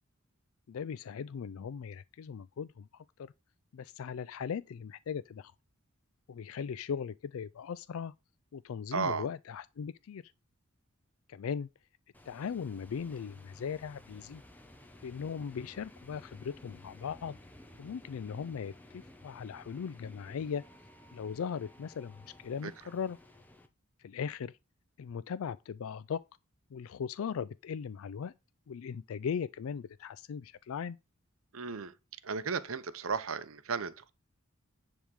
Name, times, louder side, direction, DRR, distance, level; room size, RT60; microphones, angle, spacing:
voice 1, 0.7-3.3 3.7-5.5 6.3-8.1 8.5-10.2 11.3-11.7 12.3-14.4 15.0-17.4 17.8-20.6 21.1-23.2 24.0-24.6 25.0-26.2 26.7-28.3 28.7-31.0, left 7 dB, 75° left, 0.4 m, -38 dB
voice 2, 8.9-9.3 22.6-22.7 31.5-31.9 32.2-34.1, right 5 dB, 75° right, 0.8 m, -34 dB
sound 1, 12.1-23.7, left 1 dB, 10° left, 1.0 m, -55 dB
10.5 x 3.6 x 6.2 m
head